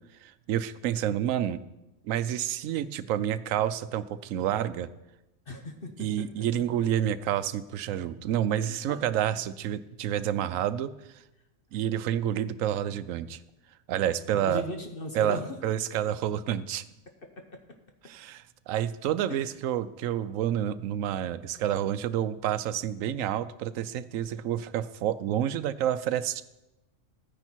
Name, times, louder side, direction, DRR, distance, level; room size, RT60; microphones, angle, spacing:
voice 1, 0.2-1.6 2.0-4.9 6.0-11.2 11.7-13.4 13.9-14.6 15.1-16.8 18.0-26.4, right 11 dB, 80° right, 14 dB, 1.0 m, -29 dB
voice 2, 5.5-6.4 6.8-6.9 8.6-9.0 14.4-15.7 17.3-17.6 19.3-19.4, left 1 dB, 45° left, 4 dB, 1.1 m, -38 dB
14.0 x 9.8 x 4.5 m, 0.94 s
omnidirectional pair, 1.4 m